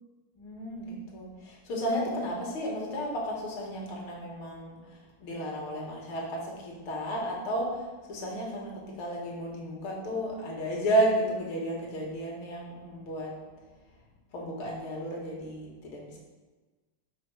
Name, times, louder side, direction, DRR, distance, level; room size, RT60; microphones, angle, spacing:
voice 1, 0.4-13.3 14.3-16.2, right 1 dB, 85° left, -2 dB, 2.3 m, -33 dB
5.0 x 4.6 x 5.7 m, 1.3 s
omnidirectional pair, 2.3 m